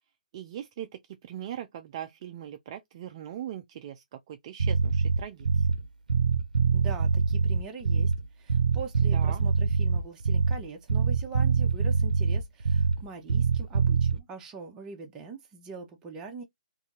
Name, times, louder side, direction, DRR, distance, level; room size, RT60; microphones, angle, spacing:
voice 1, 0.3-5.7 9.1-9.4, right 11 dB, 40° right, 0.5 m, -40 dB
Bass guitar, 4.6-5.8 6.1-8.2 8.5-10.6 10.9-13.0 13.3-14.2, right 5 dB, 80° right, 0.6 m, -24 dB
voice 2, 6.7-16.4, right 4 dB, 15° right, 0.8 m, -42 dB
2.7 x 2.7 x 3.8 m
hypercardioid pair, 145°, 4 cm